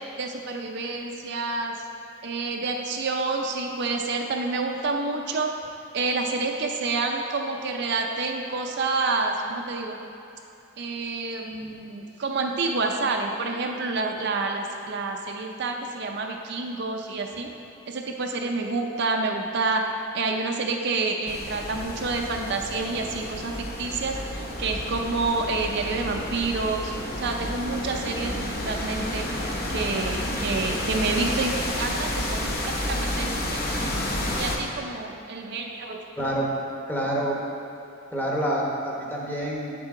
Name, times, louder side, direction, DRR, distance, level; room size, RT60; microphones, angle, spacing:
voice 1, 0.2-1.8 2.2-5.5 5.9-10.0 10.8-17.5 17.9-19.8 20.1-29.3 29.7-33.8 34.4-36.0, right 3 dB, 55° right, 2 dB, 0.5 m, -28 dB
sound 1, 21.3-34.6, left 1 dB, 45° left, 0.9 m, -30 dB
voice 2, 36.2-36.5 36.9-37.3 38.1-39.7, right 1 dB, 10° left, -3 dB, 1.0 m, -27 dB
8.5 x 7.4 x 3.7 m, 2.8 s
head